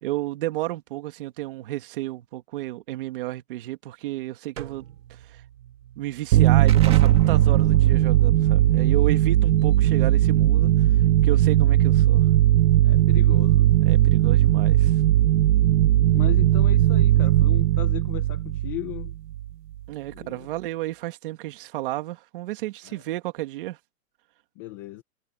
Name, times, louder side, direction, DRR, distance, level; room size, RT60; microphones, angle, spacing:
voice 1, 0.0-5.4 6.0-10.9 11.2-12.3 13.9-15.0 19.9-23.8, right 17 dB, 35° right, 2.3 m, -32 dB
sound 1, 4.6-10.8, right 11 dB, 55° right, 3.2 m, -48 dB
sound 2, 6.3-19.5, right 13 dB, 85° right, 0.7 m, -18 dB
Explosion, 6.7-12.1, right 10 dB, 10° right, 1.8 m, -35 dB
voice 2, 12.8-13.8 16.1-19.1 20.1-20.5 22.8-23.0 24.6-25.0, left 17 dB, 15° left, 0.7 m, -36 dB
hypercardioid pair, 170°, 47 cm